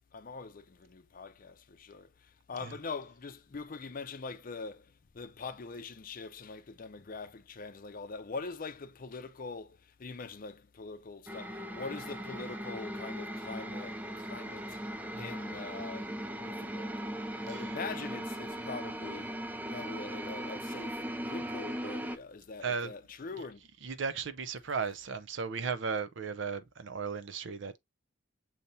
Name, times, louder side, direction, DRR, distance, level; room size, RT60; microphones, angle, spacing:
voice 1, 0.1-2.1 2.5-14.8 15.1-16.1 16.4-17.0 17.5-19.3 19.7-23.6, left 4 dB, 45° left, 0.5 m, -43 dB
sound 1, 11.3-22.2, right 1 dB, 10° right, 0.4 m, -39 dB
voice 2, 22.6-22.9 23.8-27.7, right 5 dB, 65° right, 0.5 m, -36 dB
6.7 x 2.8 x 2.6 m
head